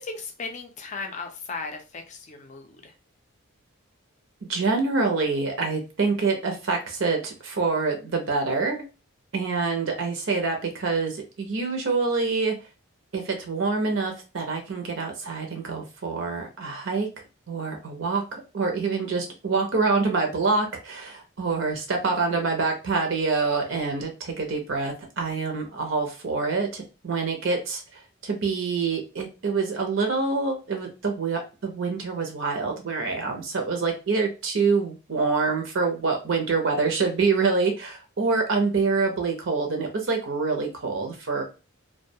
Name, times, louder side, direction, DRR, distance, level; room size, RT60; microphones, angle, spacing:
voice 1, 0.0-2.9, left 4 dB, 35° left, 4 dB, 0.4 m, -36 dB
voice 2, 4.5-8.8 9.3-12.6 13.1-17.1 17.5-27.8 28.2-41.4, right 4 dB, 60° right, 3 dB, 0.6 m, -26 dB
2.2 x 2.2 x 2.6 m, 0.31 s
head